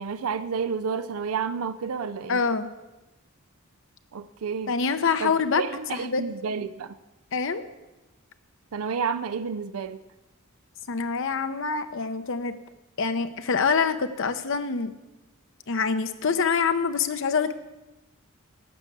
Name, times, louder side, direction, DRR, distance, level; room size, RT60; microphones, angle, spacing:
voice 1, 0.0-2.4 4.1-4.7 5.2-5.3 5.6-6.9 8.7-10.0, right 6 dB, 90° right, 13 dB, 0.5 m, -30 dB
voice 2, 2.3-2.7 4.7-5.6 5.9-6.2 7.3-7.6 10.9-12.5 13.0-14.9 15.7-17.5, left 5 dB, 65° left, 9 dB, 0.7 m, -25 dB
12.0 x 5.9 x 8.6 m, 1.0 s
head